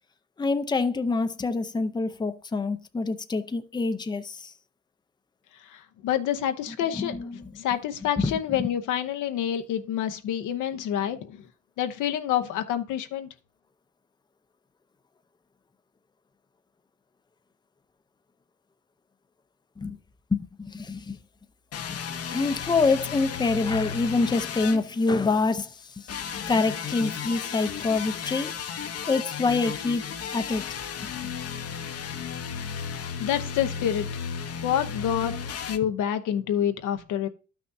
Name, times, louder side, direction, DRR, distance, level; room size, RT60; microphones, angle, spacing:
voice 1, 0.4-4.5 6.7-7.5 8.2-8.7 19.8-20.0 20.3-21.2 21.9-22.0 22.3-28.7 29.1-30.7 31.0-31.3, left 3 dB, 15° left, 0.6 m, -26 dB
voice 2, 5.6-7.3 7.6-11.4 11.8-13.3 33.2-34.1 34.6-35.3 35.7-37.3, left 10 dB, 85° left, 0.8 m, -27 dB
sound 1, 21.7-25.4 26.1-35.8, left 7 dB, 55° left, 0.8 m, -34 dB
12.0 x 5.9 x 2.6 m
cardioid pair, 90°, 30 cm